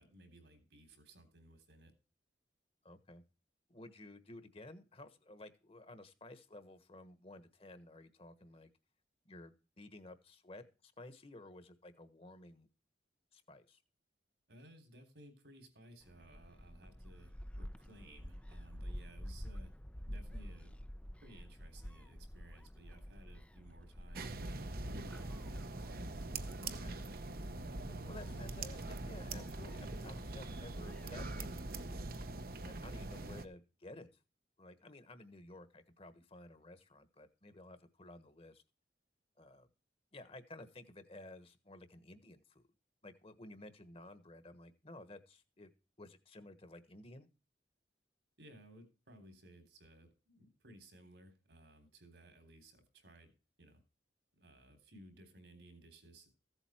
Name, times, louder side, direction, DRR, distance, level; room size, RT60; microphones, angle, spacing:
voice 1, 0.0-1.9 14.5-19.7 20.1-20.7 21.2-24.6 24.8-25.6 48.4-53.3 53.6-53.8 54.3-56.3, right 1 dB, 75° right, 8 dB, 3.6 m, -59 dB
voice 2, 2.8-3.2 3.7-8.7 9.2-12.7 13.3-13.8 26.6-27.0 28.0-32.0 32.6-34.1 34.6-38.6 39.4-39.7 40.1-42.6 43.0-45.7 46.0-47.3, left 2 dB, 35° left, 11 dB, 1.3 m, -54 dB
Gull seagull, 16.0-31.4, equal, 5° left, 0.5 m, -50 dB
sound 1, 24.1-33.5, right 2 dB, 55° right, 0.9 m, -43 dB
15.0 x 8.1 x 4.4 m, 0.33 s
head